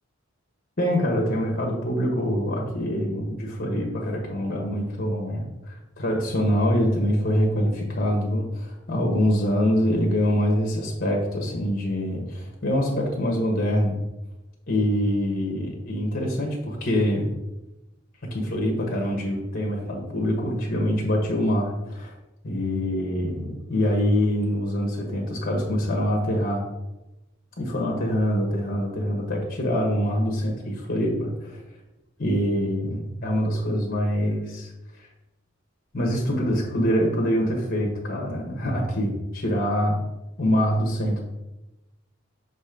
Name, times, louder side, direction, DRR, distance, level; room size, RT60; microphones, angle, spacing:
voice 1, 0.8-14.0 14.7-17.3 18.3-22.1 22.4-26.6 27.6-31.6 32.2-34.7 35.9-40.0 40.4-41.2, equal, 50° left, 0 dB, 1.3 m, -25 dB
5.9 x 4.2 x 5.1 m, 0.98 s
head